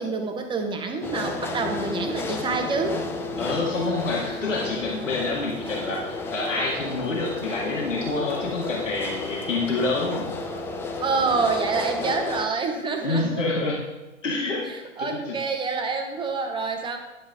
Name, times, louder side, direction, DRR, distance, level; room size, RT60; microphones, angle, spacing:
voice 1, 0.0-3.0 11.0-13.4 14.6-17.0, right 4 dB, 15° right, 5 dB, 0.9 m, -27 dB
sound 1, 1.0-12.5, left 3 dB, 5° left, 0.4 m, -32 dB
voice 2, 3.4-10.3 13.0-13.9 14.2-15.4, left 3 dB, 80° left, -3 dB, 1.8 m, -27 dB
10.5 x 7.4 x 3.6 m, 1.1 s
figure-of-eight pair, 110°, 37 cm